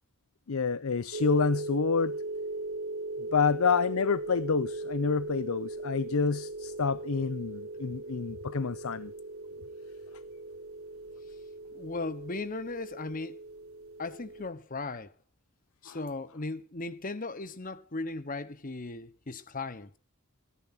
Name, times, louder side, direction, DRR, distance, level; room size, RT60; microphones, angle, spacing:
voice 1, 0.5-2.2 3.2-9.1 15.9-16.0, left 5 dB, 80° left, 0.6 m, -28 dB
sound 1, 1.1-14.5, right 2 dB, 80° right, 2.1 m, -39 dB
voice 2, 11.7-13.4 14.0-15.1 15.8-20.0, left 3 dB, 40° left, 1.1 m, -37 dB
15.0 x 11.0 x 5.9 m
head